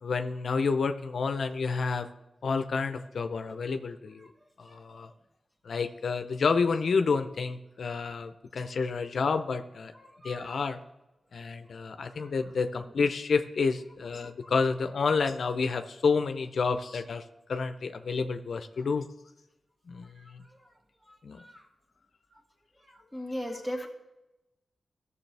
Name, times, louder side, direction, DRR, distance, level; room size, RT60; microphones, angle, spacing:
voice 1, 0.0-2.1 2.4-4.3 4.6-5.1 5.6-9.9 10.2-10.8 11.3-17.2 17.5-19.0 19.9-20.4 21.2-21.4 23.5-23.9, left 4 dB, 75° left, 8 dB, 0.6 m, -29 dB
voice 2, 10.0-10.6 12.1-12.3 14.2-14.5 20.2-20.3 21.1-21.7 22.8-23.9, equal, 15° right, 1 dB, 2.1 m, -40 dB
15.0 x 6.8 x 3.4 m, 0.98 s
cardioid pair, 60°, 0 cm